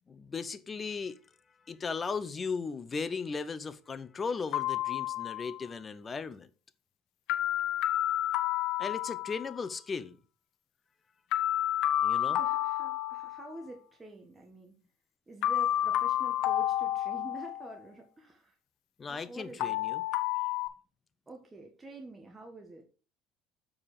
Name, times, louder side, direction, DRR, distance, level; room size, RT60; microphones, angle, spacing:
voice 1, 0.1-1.2 1.7-6.5 8.8-10.2 12.0-12.4 19.0-20.0, left 5 dB, 30° left, 0.7 m, -37 dB
sound 1, 4.5-5.7 7.3-9.6 11.3-13.6 15.4-17.8 19.6-20.7, left 12 dB, 70° left, 0.7 m, -30 dB
voice 2, 12.3-14.7 15.3-18.5 19.1-19.7 21.3-22.9, right 2 dB, 20° right, 1.5 m, -48 dB
7.3 x 4.8 x 4.9 m
supercardioid pair, 105°, 0 cm